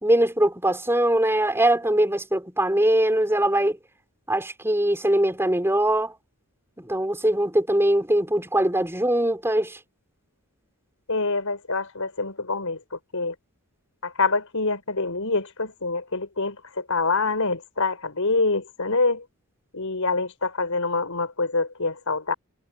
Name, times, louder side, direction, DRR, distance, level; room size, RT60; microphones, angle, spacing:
voice 1, 0.0-3.8 4.3-6.1 6.8-9.8, right 1 dB, 10° right, 5.3 m, -22 dB
voice 2, 11.1-13.3 14.0-19.2 19.7-22.3, left 3 dB, 75° left, 4.5 m, -26 dB
head